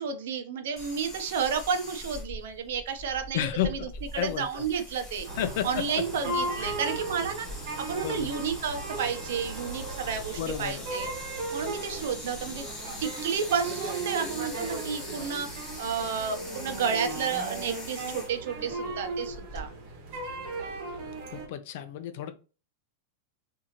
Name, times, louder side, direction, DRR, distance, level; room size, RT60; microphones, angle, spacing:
voice 1, 0.0-3.8 4.1-5.3 5.6-7.5 7.8-11.1 11.5-12.7 13.0-15.5 15.8-19.7, right 6 dB, 70° right, 0.8 m, -31 dB
sound 1, 0.8-19.7, left 1 dB, 15° left, 1.9 m, -43 dB
voice 2, 3.3-3.7 4.2-4.6 5.4-5.8 6.6-6.8 8.0-8.3 10.4-10.9 18.8-19.0 21.3-22.4, left 10 dB, 50° left, 0.5 m, -32 dB
sound 2, 5.2-21.5, right 2 dB, 40° right, 1.1 m, -36 dB
3.7 x 2.7 x 2.9 m
supercardioid pair, 170°, 0 cm